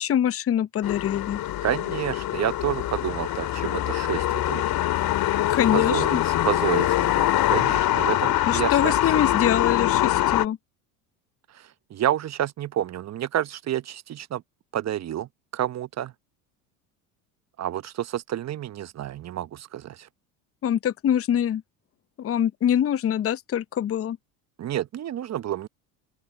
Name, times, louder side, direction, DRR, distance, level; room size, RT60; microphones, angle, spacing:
voice 1, 0.0-1.4 5.5-6.2 8.5-10.6 20.6-21.6 22.2-24.2, left 10 dB, 30° left, 0.8 m, -24 dB
sound 1, 0.8-10.4, left 14 dB, 50° left, 2.2 m, -24 dB
voice 2, 1.6-4.6 5.7-9.0 11.5-11.6 11.9-14.4 14.7-16.1 17.6-20.1 24.6-25.7, right 11 dB, 35° right, 0.9 m, -29 dB
open air
hypercardioid pair, 80°, 46 cm